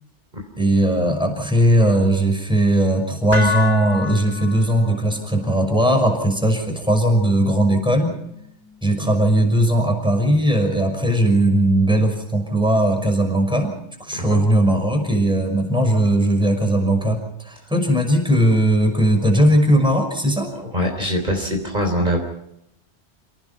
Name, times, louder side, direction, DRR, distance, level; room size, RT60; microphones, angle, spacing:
voice 1, 0.6-8.2 8.8-13.7 14.0-20.5, right 1 dB, 5° right, 3 dB, 5.7 m, -18 dB
sound 1, 3.3-11.4, left 3 dB, 55° left, 4.3 m, -33 dB
voice 2, 20.6-22.2, equal, 40° right, 2 dB, 3.9 m, -23 dB
29.0 x 18.5 x 5.8 m, 0.79 s
omnidirectional pair, 1.2 m